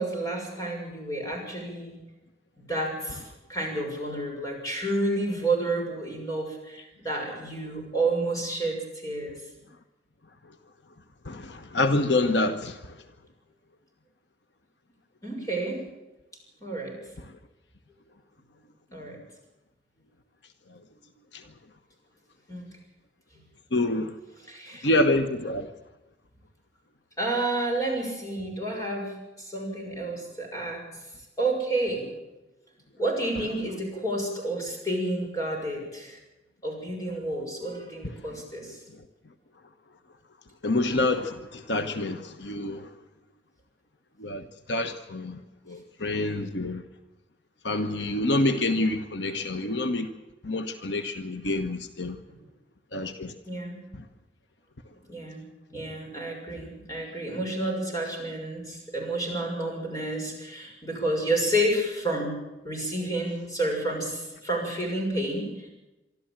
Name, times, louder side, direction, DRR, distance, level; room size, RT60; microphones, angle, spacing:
voice 1, 0.0-2.0 2.7-9.4 15.2-15.8 16.6-17.0 18.9-19.2 22.5-22.7 24.4-24.9 27.2-30.8 31.4-32.1 33.0-36.2 36.6-38.8 52.3-52.4 53.5-53.8 55.1-55.4 55.7-62.4 62.6-65.7, right 1 dB, 20° left, 0 dB, 6.5 m, -30 dB
voice 2, 11.2-12.9 21.3-21.4 23.7-24.1 24.8-25.7 40.6-42.9 44.2-45.4 45.7-46.8 47.6-50.1 50.4-52.2 52.9-53.3, left 2 dB, 80° left, 8 dB, 1.3 m, -27 dB
24.5 x 13.0 x 8.9 m, 0.99 s
head